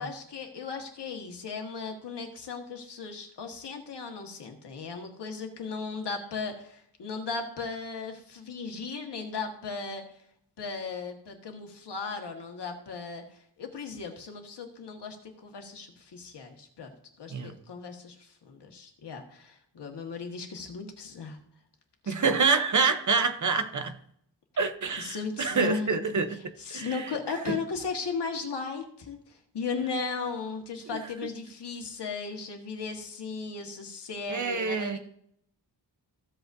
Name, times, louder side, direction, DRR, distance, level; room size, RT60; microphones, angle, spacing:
voice 1, 0.0-10.2 10.6-21.4 22.0-22.4 25.0-26.2 26.6-35.0, left 4 dB, 70° left, 1.6 m, -36 dB
voice 2, 22.1-24.0 24.6-26.4 26.7-27.0 27.5-27.6 30.9-31.0 34.3-35.0, right 4 dB, 45° right, 0.8 m, -27 dB
15.0 x 7.9 x 2.6 m
wide cardioid pair, 170°, 43 cm